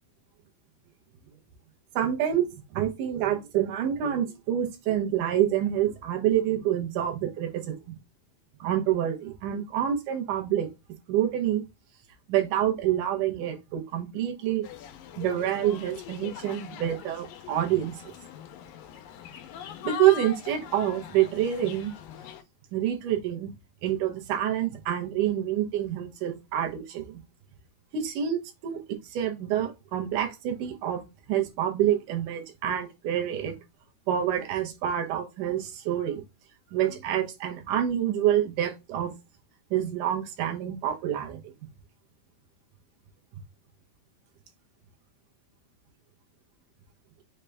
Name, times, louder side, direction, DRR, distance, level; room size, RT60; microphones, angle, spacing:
voice 1, 2.0-2.5 2.7-7.8 8.6-10.7 11.1-11.7 12.3-14.6 15.2-18.1 19.8-21.9 22.7-23.5 23.8-27.2 27.9-31.0 31.3-33.6 34.1-36.2 36.7-39.1 39.7-41.5, right 11 dB, 80° right, 1.8 m, -27 dB
sound 1, 14.6-22.4, left 10 dB, 80° left, 2.0 m, -42 dB
6.3 x 2.2 x 3.4 m
omnidirectional pair, 4.7 m